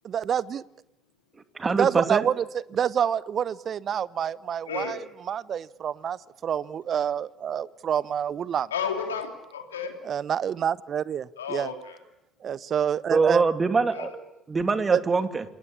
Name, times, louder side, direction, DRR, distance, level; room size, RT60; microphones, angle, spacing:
voice 1, 0.0-0.6 1.7-8.7 10.0-11.7 12.4-13.4 14.9-15.0, right 8 dB, 50° right, 20 dB, 0.9 m, -27 dB
voice 2, 1.5-2.2 13.1-14.1 14.5-15.4, right 4 dB, 30° right, 9 dB, 2.7 m, -23 dB
voice 3, 8.7-9.9 11.4-12.0 13.9-14.1, left 6 dB, 85° left, 5 dB, 2.9 m, -32 dB
28.0 x 20.0 x 8.6 m, 0.86 s
hypercardioid pair, 50°, 0 cm